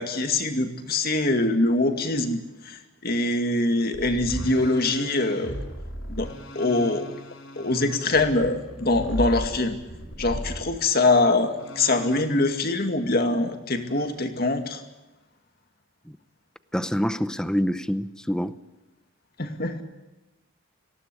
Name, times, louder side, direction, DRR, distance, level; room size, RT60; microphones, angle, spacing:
voice 1, 0.0-5.6 6.1-7.1 7.6-9.8 10.2-14.8 19.4-19.8, left 2 dB, 45° left, 6 dB, 2.3 m, -24 dB
sound 1, 3.9-10.8 11.6-12.6 13.9-14.1, equal, 80° left, 6.1 m, -36 dB
voice 2, 16.7-18.5, equal, 5° left, 13 dB, 0.7 m, -26 dB
19.5 x 17.0 x 8.6 m, 1.1 s
head